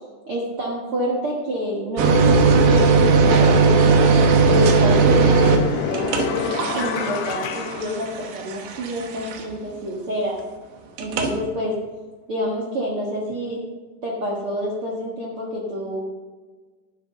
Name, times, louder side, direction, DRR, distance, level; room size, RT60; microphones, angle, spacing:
voice 1, 0.3-4.0 4.4-10.4 11.0-11.8 12.3-13.6 14.0-16.0, equal, 60° right, -3 dB, 1.4 m, -28 dB
sound 1, 2.0-9.6 11.0-11.3, right 4 dB, 85° right, 3.5 m, -18 dB
sound 2, 2.8-2.9 3.5-8.7, left 7 dB, 80° left, 2.3 m, -30 dB
12.5 x 7.9 x 5.5 m, 1.4 s
omnidirectional pair, 5.0 m